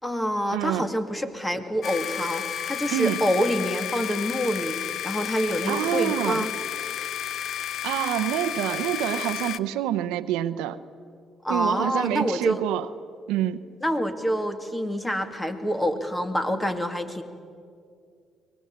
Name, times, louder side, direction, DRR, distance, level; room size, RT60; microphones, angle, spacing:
voice 1, 0.0-6.5 11.4-12.6 13.8-17.2, equal, 15° left, 8 dB, 2.4 m, -27 dB
voice 2, 0.5-0.9 2.9-3.2 5.7-6.5 7.8-10.8 11.5-12.9 13.3-13.6, right 12 dB, 90° right, 12 dB, 0.8 m, -27 dB
sound 1, 1.8-9.6, left 10 dB, 65° left, 0.7 m, -32 dB
23.5 x 19.5 x 8.7 m, 2.3 s
supercardioid pair, 70°, 0 cm